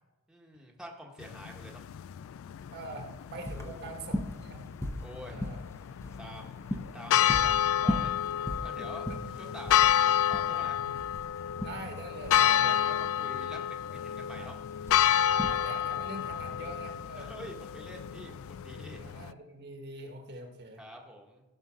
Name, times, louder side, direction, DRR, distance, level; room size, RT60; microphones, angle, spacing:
voice 1, 0.3-1.9 3.5-4.0 5.0-5.4 6.1-8.1 8.6-9.1 9.4-10.8 12.3-14.6 17.2-19.0 20.8-21.4, equal, 5° right, -1 dB, 1.2 m, -47 dB
Kerkklok Desteldonk, 1.2-19.3, left 10 dB, 65° left, 0.3 m, -30 dB
sound 1, 2.6-18.3, left 1 dB, 15° left, 0.8 m, -39 dB
voice 2, 2.7-4.7 5.2-5.6 8.8-9.2 10.8-10.9 11.6-12.7 14.3-14.5 15.2-17.3 19.0-20.8, right 2 dB, 50° right, 4 dB, 1.4 m, -44 dB
15.0 x 5.5 x 6.2 m, 1.1 s
head